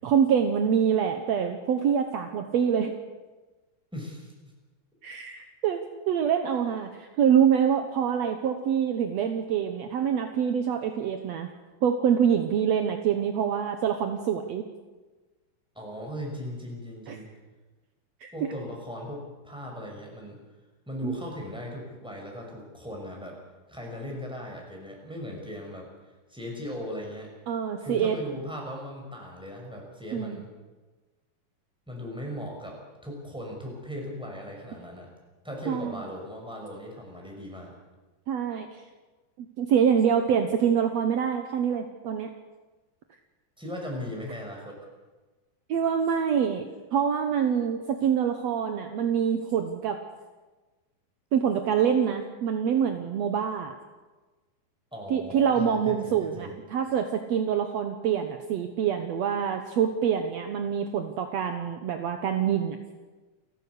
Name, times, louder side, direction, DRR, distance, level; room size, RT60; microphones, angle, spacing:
voice 1, 0.0-2.9 5.0-11.5 11.8-14.6 17.1-17.2 18.2-18.3 21.0-21.1 27.5-28.2 30.1-30.4 35.7-36.0 38.3-38.8 39.4-42.3 45.7-50.0 51.3-53.7 55.1-62.8, right 8 dB, 70° right, 6 dB, 1.6 m, -25 dB
voice 2, 3.9-4.5 15.7-17.3 18.3-20.4 20.9-23.4 23.7-25.9 26.3-27.3 27.8-30.5 31.9-35.1 35.4-37.7 43.6-44.8 54.9-56.6, left 1 dB, ahead, -1 dB, 5.5 m, -38 dB
29.5 x 12.0 x 8.1 m, 1.2 s
omnidirectional pair, 4.5 m